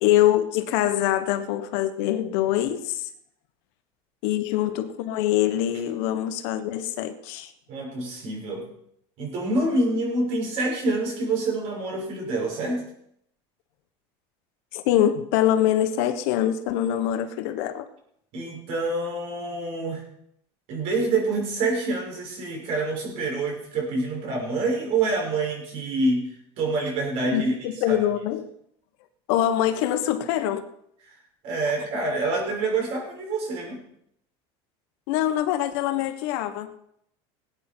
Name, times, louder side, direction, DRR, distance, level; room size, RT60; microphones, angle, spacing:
voice 1, 0.0-3.1 4.2-7.5 14.7-17.9 27.3-28.5 29.3-30.6 35.1-36.7, left 12 dB, 70° left, 1.3 m, -24 dB
voice 2, 7.7-8.6 9.2-12.8 18.3-20.0 20.7-26.3 26.6-27.5 27.9-28.0 31.1-31.2 31.4-33.8, right 2 dB, 50° right, 6.1 m, -26 dB
20.0 x 9.2 x 4.6 m
cardioid pair, 165°, 14 cm